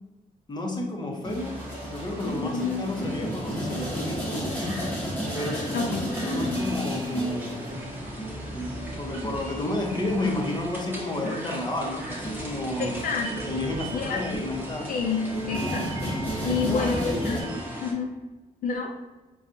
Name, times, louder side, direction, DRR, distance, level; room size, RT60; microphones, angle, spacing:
voice 1, 0.5-4.8 5.3-7.8 8.4-13.1 13.4-14.9 16.4-17.7, left 1 dB, 30° left, 0 dB, 0.8 m, -32 dB
sound 1, 1.2-17.4, equal, 10° left, 1.1 m, -34 dB
sound 2, 1.4-17.9, right 1 dB, 15° right, 1.0 m, -39 dB
voice 2, 2.4-2.8 5.7-6.1 12.8-13.5 13.9-14.2 14.9-16.2 16.4-17.4 17.8-18.1 18.6-19.0, left 5 dB, 65° left, 1 dB, 0.4 m, -29 dB
4.1 x 2.3 x 2.6 m, 1.1 s
cardioid pair, 75°, 15 cm